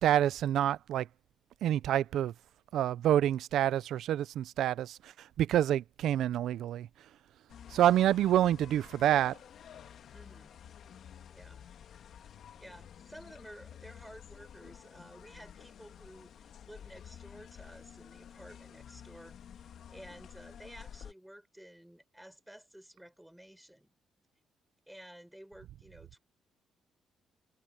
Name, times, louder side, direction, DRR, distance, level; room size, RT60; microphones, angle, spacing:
voice 1, 0.0-1.1 1.6-2.3 2.7-5.0 5.4-6.9 7.7-9.4, right 11 dB, 75° right, 0.7 m, -27 dB
sound 1, 7.5-21.1, left 9 dB, 65° left, 1.9 m, -51 dB
voice 2, 10.1-10.6 11.3-11.7 12.6-23.9 24.9-26.2, equal, 5° right, 5.9 m, -53 dB
cardioid pair, 90°, 0 cm